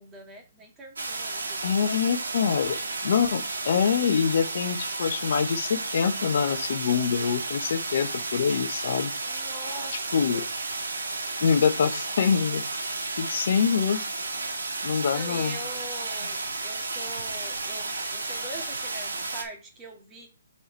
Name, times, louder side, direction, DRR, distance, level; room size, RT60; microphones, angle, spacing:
voice 1, 0.0-2.0 9.2-10.5 15.1-20.3, right 2 dB, 15° right, 2 dB, 1.8 m, -43 dB
sound 1, 1.0-19.4, right 3 dB, 75° right, 1.8 m, -32 dB
voice 2, 1.6-2.8 3.0-9.1 10.1-10.4 11.4-14.0 14.8-15.6, left 7 dB, 55° left, 8 dB, 1.0 m, -25 dB
5.6 x 4.8 x 4.6 m, 0.37 s
hypercardioid pair, 145°, 0 cm